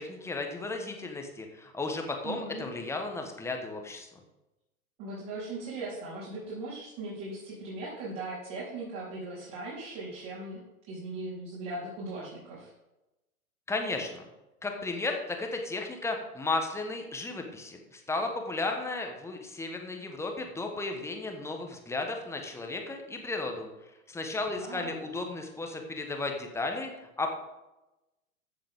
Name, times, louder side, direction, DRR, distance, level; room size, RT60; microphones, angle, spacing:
voice 1, 0.0-4.1 13.7-14.2 14.6-23.7 24.1-26.9 27.2-27.3, left 3 dB, 5° left, 3 dB, 1.3 m, -34 dB
voice 2, 2.2-2.6 5.0-10.6 10.9-12.7 24.6-25.0, right 2 dB, 35° right, -7 dB, 4.1 m, -39 dB
14.5 x 7.4 x 3.7 m, 0.98 s
figure-of-eight pair, 110°, 44 cm